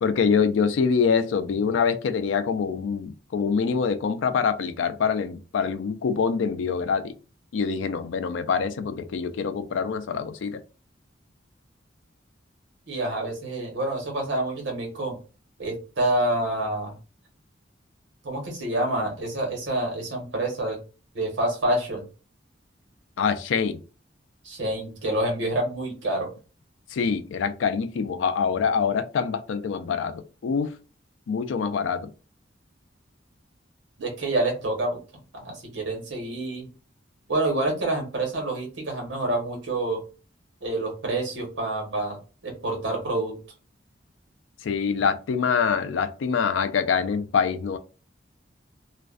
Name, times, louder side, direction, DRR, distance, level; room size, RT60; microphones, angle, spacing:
voice 1, 0.0-7.2 7.5-10.6 23.2-23.8 26.9-30.7 31.3-32.1 44.6-47.8, left 6 dB, 85° left, 0.4 m, -25 dB
voice 2, 12.9-15.2 15.6-17.0 18.2-20.8 21.1-22.1 24.4-26.3 34.0-35.0 35.3-36.7 37.3-40.0 40.6-42.2 42.4-43.4, right 1 dB, 80° right, 1.1 m, -27 dB
2.4 x 2.1 x 2.4 m
head